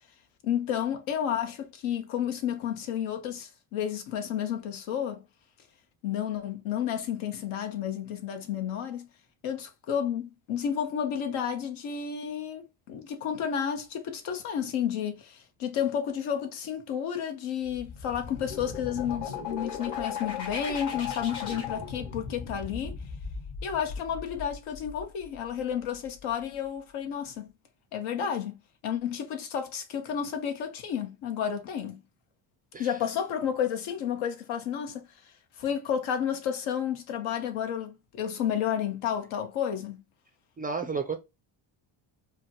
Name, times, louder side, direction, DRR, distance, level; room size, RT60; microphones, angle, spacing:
voice 1, 0.4-5.2 6.0-9.1 9.4-23.0 23.6-27.5 27.9-28.6 28.8-32.0 32.8-40.0, left 8 dB, 75° left, 1.0 m, -31 dB
sound 1, 17.6-25.3, left 6 dB, 55° left, 2.1 m, -37 dB
voice 2, 40.6-41.2, right 5 dB, 20° right, 0.3 m, -32 dB
4.9 x 2.1 x 2.8 m
cardioid pair, 105°, 48 cm